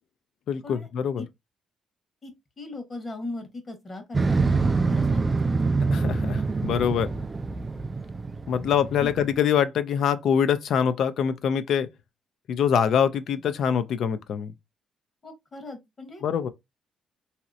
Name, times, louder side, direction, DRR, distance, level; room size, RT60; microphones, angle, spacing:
voice 1, 0.5-1.2 5.9-7.1 8.5-11.9 12.5-14.5 16.2-16.5, left 8 dB, 70° left, 0.4 m, -24 dB
voice 2, 2.2-5.7 9.0-9.1 15.2-16.2, left 2 dB, 35° left, 1.1 m, -39 dB
Motorcycle, 4.1-9.4, right 4 dB, 25° right, 0.3 m, -25 dB
3.0 x 2.8 x 2.5 m
cardioid pair, 90°, 0 cm